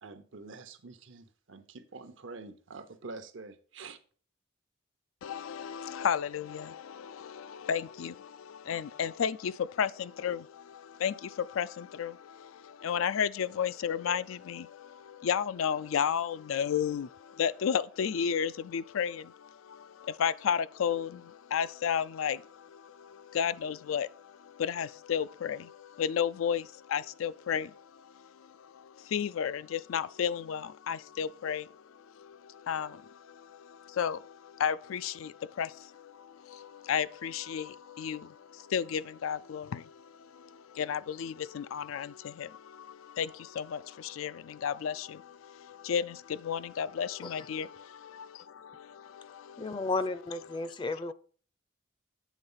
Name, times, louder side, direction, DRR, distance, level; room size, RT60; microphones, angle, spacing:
voice 1, 0.0-4.0, right 3 dB, 70° right, 0.8 m, -46 dB
voice 2, 5.2-49.8 50.6-50.7, left 8 dB, 90° left, 0.4 m, -33 dB
voice 3, 49.6-51.1, left 3 dB, 25° left, 0.4 m, -33 dB
8.2 x 3.9 x 5.5 m
head